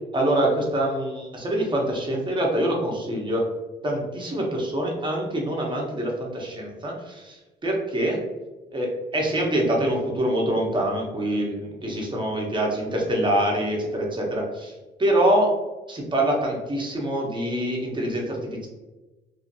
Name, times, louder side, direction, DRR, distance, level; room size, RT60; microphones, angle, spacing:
voice 1, 0.1-3.5 3.8-8.2 8.7-14.7 15.0-15.5 15.9-18.7, right 1 dB, 25° right, -1 dB, 0.9 m, -25 dB
2.7 x 2.5 x 2.6 m, 1.1 s
cardioid pair, 90°, 20 cm